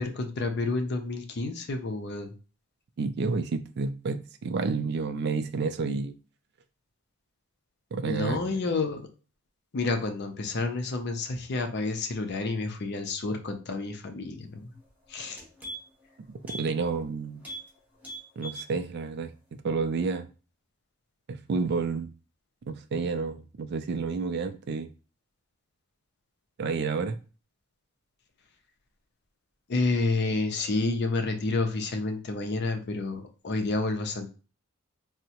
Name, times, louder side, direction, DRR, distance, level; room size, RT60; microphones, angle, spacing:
voice 1, 0.0-2.3 8.0-9.1 9.7-14.7 15.1-15.4 29.7-34.3, left 3 dB, 50° left, 0.5 m, -29 dB
voice 2, 3.0-6.1 7.9-8.4 16.5-17.4 18.4-19.3 19.6-20.2 21.3-22.1 22.7-24.9 26.6-27.2, right 4 dB, 50° right, 0.3 m, -30 dB
sound 1, 14.8-14.9 15.2-16.1 16.4-16.7 17.0-17.1 17.4-17.7 18.0-18.7 19.1-19.2, right 1 dB, 5° right, 0.7 m, -40 dB
3.5 x 2.1 x 2.8 m
head